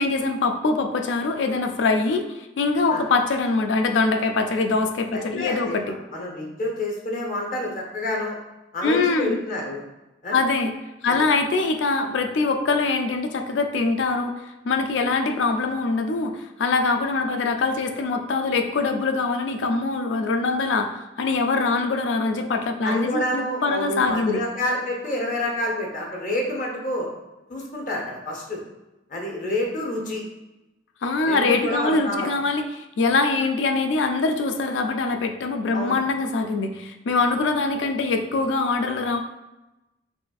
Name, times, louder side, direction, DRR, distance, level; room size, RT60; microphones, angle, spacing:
voice 1, 0.0-6.0 8.8-9.4 10.3-10.7 11.0-24.5 31.0-39.2, left 3 dB, 75° left, 5 dB, 0.4 m, -23 dB
voice 2, 5.1-5.8 6.1-8.4 8.7-9.8 10.2-10.4 11.1-11.2 22.8-27.1 27.5-28.6 29.1-30.2 31.3-32.3 35.7-36.0, left 1 dB, 45° left, -1 dB, 0.9 m, -28 dB
5.5 x 2.5 x 2.3 m, 1.0 s
head